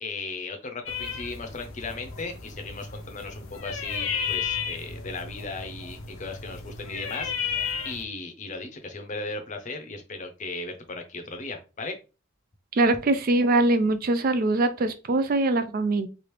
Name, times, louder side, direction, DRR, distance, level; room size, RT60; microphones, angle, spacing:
voice 1, 0.0-7.6 7.8-12.0, left 3 dB, 40° left, 5 dB, 0.6 m, -36 dB
sound 1, 0.9-8.0, left 6 dB, 85° left, 0.6 m, -33 dB
voice 2, 12.7-16.1, right 2 dB, 45° right, 10 dB, 0.4 m, -22 dB
3.3 x 2.4 x 3.0 m, 0.30 s
head